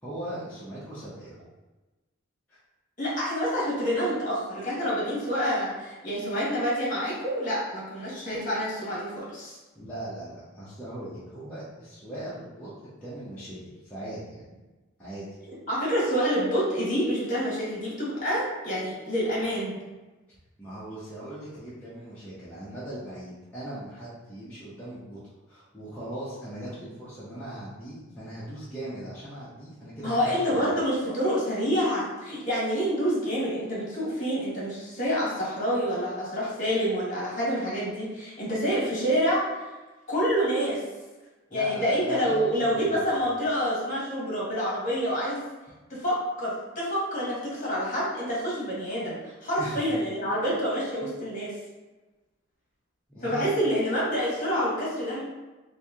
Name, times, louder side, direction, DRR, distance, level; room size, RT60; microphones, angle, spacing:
voice 1, 0.0-1.5 2.5-2.6 9.7-13.6 13.8-14.4 15.0-15.3 20.6-25.2 25.5-30.7 41.5-43.1 49.6-49.8 53.1-53.7, right 1 dB, 5° left, -12 dB, 0.7 m, -39 dB
voice 2, 3.0-9.6 15.7-19.8 30.0-39.6 40.1-40.8 41.5-45.4 45.9-51.5 53.2-55.2, equal, 35° left, -7 dB, 1.3 m, -27 dB
3.0 x 2.7 x 3.5 m, 1.2 s
head